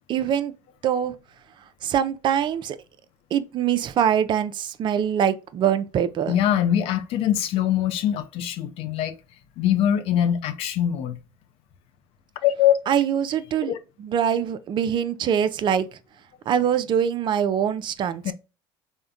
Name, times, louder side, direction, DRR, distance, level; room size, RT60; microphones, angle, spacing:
voice 1, 0.1-0.5 0.8-1.1 1.8-2.8 3.3-6.4 12.9-13.7 14.0-16.0 16.5-18.3, right 9 dB, 45° right, 0.4 m, -23 dB
voice 2, 6.3-9.2 9.6-11.2 12.4-12.8 13.7-13.8 18.2-18.3, left 10 dB, 60° left, 0.5 m, -22 dB
3.5 x 2.1 x 2.5 m
supercardioid pair, 80°, 11 cm